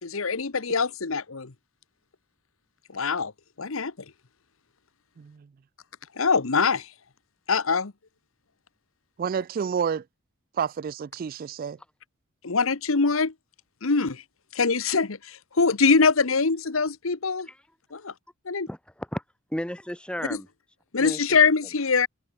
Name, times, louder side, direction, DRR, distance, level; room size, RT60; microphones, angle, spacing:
voice 1, 0.0-1.5 2.9-3.3 3.6-3.9 6.2-6.9 7.5-7.9 12.4-13.3 13.8-14.2 14.5-17.5 17.9-18.1 18.4-18.7 20.3-20.4 20.9-22.1, left 4 dB, 75° left, 1.1 m, -23 dB
voice 2, 9.2-10.0 10.6-11.8, right 7 dB, 45° right, 0.3 m, -29 dB
voice 3, 18.7-19.2 19.5-20.5 21.0-21.4, equal, 5° left, 1.4 m, -33 dB
open air
head